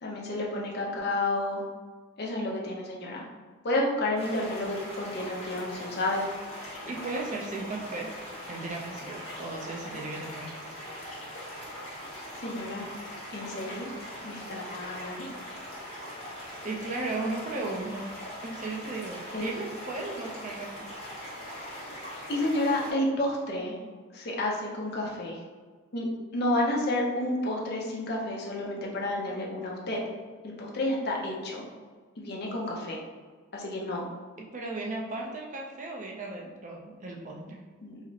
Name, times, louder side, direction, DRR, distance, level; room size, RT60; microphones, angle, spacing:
voice 1, 0.0-1.6 2.2-3.3 3.6-6.2 12.4-12.9 13.3-13.9 14.2-15.3 19.3-19.5 22.3-23.8 24.1-25.4 25.9-26.1 26.3-30.0 30.6-31.7 32.2-33.0 33.5-34.1 37.8-38.0, left 1 dB, 50° left, -2 dB, 0.6 m, -30 dB
sound 1, 4.2-22.9, equal, 70° left, 1.4 m, -41 dB
voice 2, 6.8-8.1 8.5-10.5 16.6-18.1 18.4-20.7 34.4-37.6, right 2 dB, 35° right, -1 dB, 0.4 m, -36 dB
4.9 x 2.0 x 2.7 m, 1.5 s
head